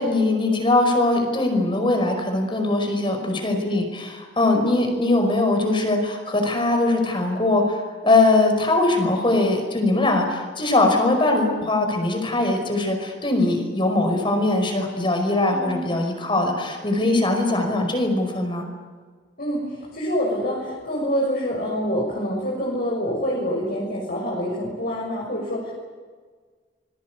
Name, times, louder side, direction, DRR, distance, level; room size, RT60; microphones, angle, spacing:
voice 1, 0.0-18.6, left 2 dB, 30° left, 4 dB, 5.3 m, -21 dB
voice 2, 4.5-4.8 15.5-15.8 17.0-17.3 19.4-25.7, equal, 55° left, -3 dB, 6.5 m, -26 dB
26.5 x 21.5 x 8.3 m, 1.5 s
head